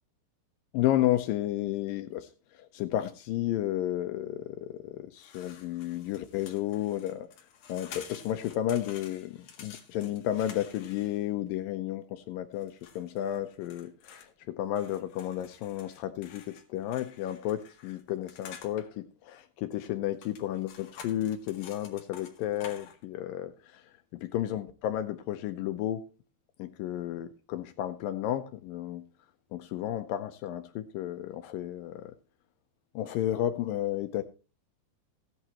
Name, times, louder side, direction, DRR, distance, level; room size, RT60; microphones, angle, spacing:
voice 1, 0.7-7.3 7.7-23.9 24.2-26.0 26.6-29.1 29.5-32.1 33.0-34.2, left 12 dB, 85° left, 1.9 m, -32 dB
sound 1, 5.2-11.5 12.6-14.3 14.8-18.8 20.1-23.0, left 7 dB, 55° left, 2.9 m, -50 dB
16.5 x 11.0 x 3.0 m
omnidirectional pair, 5.0 m